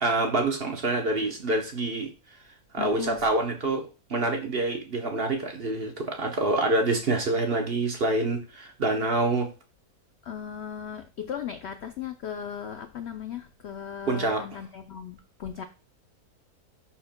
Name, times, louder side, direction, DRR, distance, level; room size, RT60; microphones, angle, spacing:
voice 1, 0.0-2.1 2.7-9.5 14.1-14.4, right 2 dB, 45° right, 3 dB, 1.0 m, -26 dB
voice 2, 2.8-3.2 10.2-15.6, left 8 dB, 70° left, 8 dB, 0.6 m, -37 dB
11.0 x 4.4 x 2.2 m, 0.33 s
omnidirectional pair, 1.7 m